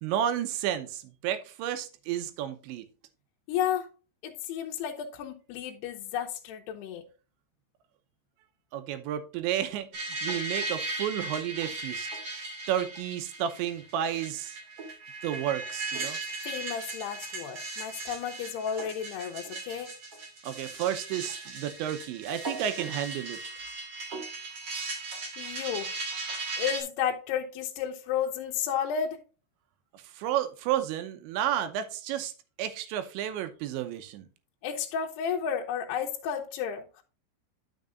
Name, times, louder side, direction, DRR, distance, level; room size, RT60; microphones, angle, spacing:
voice 1, 0.0-2.8 8.7-12.1 12.7-14.6 15.2-16.2 20.4-23.4 29.9-32.3 32.6-34.3, right 10 dB, 90° right, 3.2 m, -32 dB
voice 2, 3.5-3.9 4.2-7.0 16.4-19.9 25.4-25.9 26.6-29.2 34.6-37.0, left 8 dB, 75° left, 2.8 m, -32 dB
sound 1, 9.9-26.8, right 3 dB, 40° right, 2.7 m, -37 dB
10.5 x 6.5 x 2.5 m
omnidirectional pair, 5.1 m